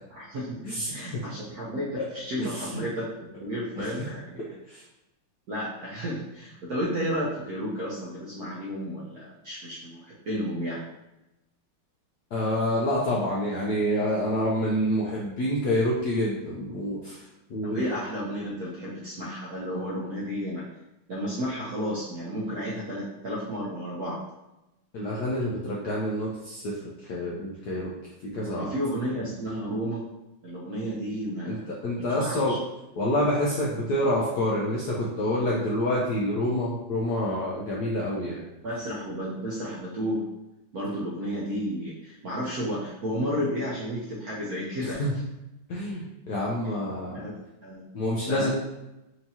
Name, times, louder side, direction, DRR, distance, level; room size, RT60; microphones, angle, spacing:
voice 1, 0.1-0.6 0.8-3.1 3.4-4.5 5.5-10.8 17.6-20.6 21.1-24.2 28.3-30.0 30.4-31.6 32.0-32.6 38.6-40.2 40.7-45.0 46.6-46.8 47.1-47.8 48.2-48.5, equal, 65° right, -6 dB, 0.9 m, -32 dB
voice 2, 0.6-1.1 2.0-2.1 2.4-2.8 3.8-3.9 4.7-4.8 12.3-17.2 17.5-17.8 24.9-26.7 27.1-27.9 28.3-28.7 31.5-32.6 33.0-38.4 44.8-45.1 45.7-47.2 47.9-48.5, left 1 dB, 70° left, -5 dB, 0.9 m, -27 dB
4.6 x 2.7 x 2.8 m, 0.93 s
omnidirectional pair, 2.4 m